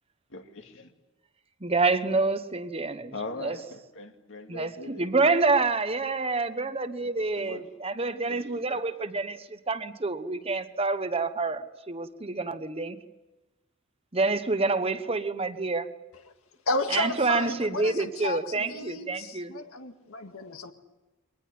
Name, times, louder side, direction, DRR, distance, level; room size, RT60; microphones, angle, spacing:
voice 1, 0.3-0.9 3.1-5.1 7.0-7.6 8.3-8.8, left 3 dB, 60° left, 5 dB, 2.4 m, -41 dB
voice 2, 1.6-3.1 3.4-3.6 4.5-13.0 14.1-15.9 16.9-19.5, right 3 dB, 30° right, 10 dB, 1.1 m, -27 dB
voice 3, 16.7-20.7, left 3 dB, 85° left, 6 dB, 1.9 m, -33 dB
23.0 x 19.0 x 9.5 m, 1.1 s
head